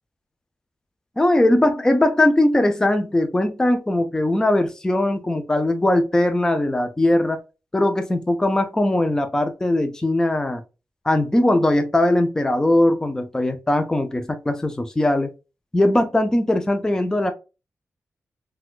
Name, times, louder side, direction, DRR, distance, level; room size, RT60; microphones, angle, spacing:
voice 1, 1.2-7.4 7.7-10.6 11.1-15.3 15.7-17.3, left 1 dB, 15° left, 0.4 m, -20 dB
4.0 x 2.2 x 2.4 m
wide cardioid pair, 120°, 5 cm